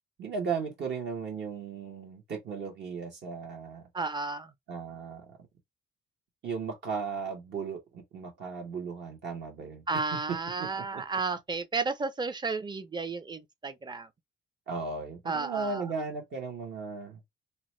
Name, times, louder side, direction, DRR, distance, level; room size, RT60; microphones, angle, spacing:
voice 1, 0.2-3.8 4.7-5.4 6.4-9.8 10.1-10.2 10.6-11.0 14.7-17.2, right 5 dB, 60° right, 1.2 m, -36 dB
voice 2, 3.9-4.5 9.9-14.1 15.3-15.9, right 4 dB, 20° right, 0.6 m, -32 dB
2.9 x 2.1 x 3.1 m
cardioid pair, 90°, 20 cm